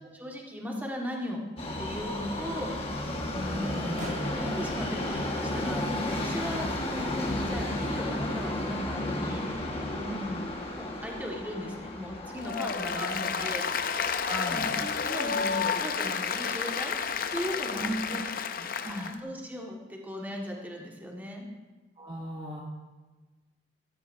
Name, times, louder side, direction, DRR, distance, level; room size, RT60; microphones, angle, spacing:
voice 1, 0.1-1.4 1.8-2.9 3.4-9.6 9.9-10.4 10.7-14.0 14.5-17.0 17.3-18.3 18.8-21.4, equal, 10° right, -1 dB, 1.7 m, -38 dB
Subway metro underground, 1.6-15.7 16.0-16.1 16.9-17.0 17.3-17.4 18.0-18.1, left 1 dB, 35° left, 1.5 m, -34 dB
voice 2, 3.3-4.0 10.1-10.5 12.9-13.5 14.2-14.7 17.8-18.2 18.6-19.1 22.0-22.6, right 1 dB, 30° right, -2 dB, 1.2 m, -37 dB
sound 1, 4.0-6.6, right 1 dB, 45° right, 1.5 m, -45 dB
Applause, 12.4-19.1, left 6 dB, 55° left, 0.6 m, -31 dB
14.5 x 13.0 x 2.7 m, 1.2 s
head